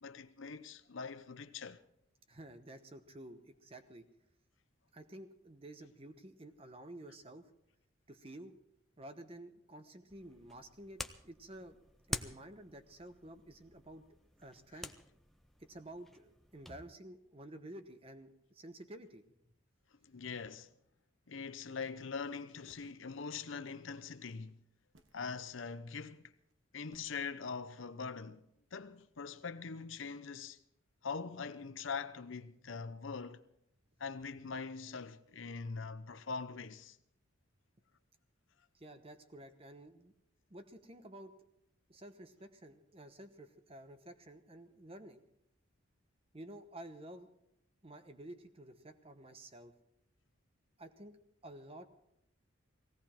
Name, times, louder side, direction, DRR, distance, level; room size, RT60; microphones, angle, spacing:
voice 1, 0.0-1.8 20.0-20.7 21.3-24.6 25.1-26.3 26.7-28.4 28.7-30.6 31.0-33.4 34.0-37.0, left 5 dB, 70° left, 0.8 m, -43 dB
voice 2, 2.3-4.0 4.9-7.5 8.1-8.6 9.0-11.8 12.1-14.0 14.4-15.0 15.6-19.2 38.7-40.1 40.5-41.4 41.9-45.2 46.3-47.3 47.8-49.7 50.8-51.9, right 1 dB, 30° right, 1.1 m, -51 dB
sound 1, 10.1-16.8, left 1 dB, ahead, 0.5 m, -48 dB
sound 2, 22.1-22.2 22.7-23.5 24.4-24.5 24.9-25.4 26.2-26.5 26.9-27.1, right 1 dB, 70° right, 1.3 m, -66 dB
18.5 x 16.5 x 4.5 m
head